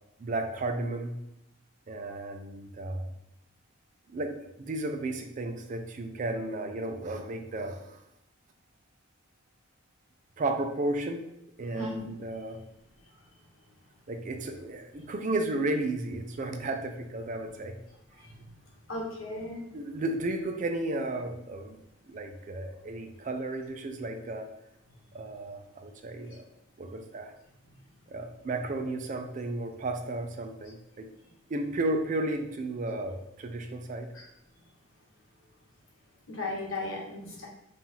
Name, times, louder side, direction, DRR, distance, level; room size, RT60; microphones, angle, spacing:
voice 1, 0.2-1.2 1.9-3.1 4.1-8.0 10.4-11.3 11.6-12.6 14.1-17.8 19.7-21.8 22.1-24.5 25.1-26.5 26.8-27.4 28.1-31.1 31.5-34.1, right 2 dB, 40° right, 6 dB, 0.4 m, -33 dB
voice 2, 11.7-12.1 18.2-18.5 18.9-19.6 34.1-34.2 36.3-37.5, left 2 dB, 75° left, -2 dB, 1.2 m, -36 dB
5.5 x 2.5 x 2.9 m, 0.83 s
head